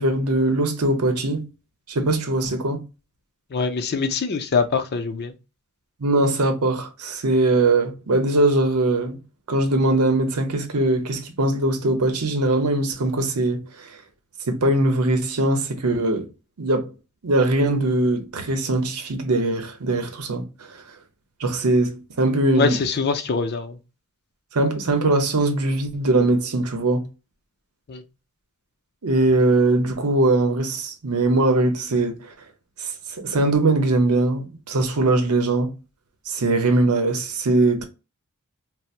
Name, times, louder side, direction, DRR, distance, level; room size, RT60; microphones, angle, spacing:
voice 1, 0.0-1.5 1.9-2.8 6.0-9.2 9.5-13.9 14.5-16.3 16.6-16.9 17.2-20.8 21.4-22.8 24.5-27.0 29.0-32.2 32.8-32.9 33.2-35.7 36.3-37.8, right 2 dB, 80° right, 0.7 m, -21 dB
voice 2, 3.5-5.3 22.6-23.8 27.9-28.0, left 5 dB, 45° left, 0.5 m, -23 dB
4.2 x 2.0 x 2.4 m
head